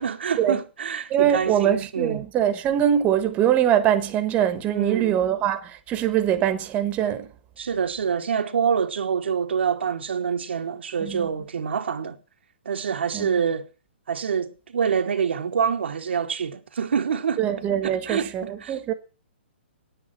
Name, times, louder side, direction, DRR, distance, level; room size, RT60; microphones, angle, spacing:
voice 1, 0.0-2.2 4.7-5.2 7.6-12.2 12.6-13.7 14.1-17.4 17.8-18.8, right 7 dB, 75° right, 1.2 m, -26 dB
voice 2, 1.1-7.3 11.0-11.3 13.1-13.3 17.4-18.9, right 10 dB, 25° right, 1.3 m, -23 dB
9.4 x 9.0 x 7.4 m
hypercardioid pair, 135°, 6 cm